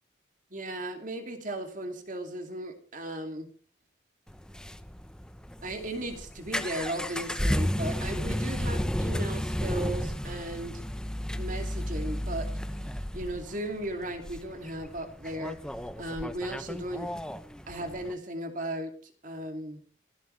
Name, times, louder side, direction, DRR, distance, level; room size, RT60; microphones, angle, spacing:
voice 1, 0.5-3.5 5.6-10.8 11.3-12.5 13.1-15.6 16.0-17.1 17.7-19.8, right 1 dB, 40° right, 6 dB, 2.6 m, -36 dB
sound 1, 4.3-18.1, equal, 5° left, 0.7 m, -33 dB
26.0 x 12.5 x 3.3 m, 0.39 s
head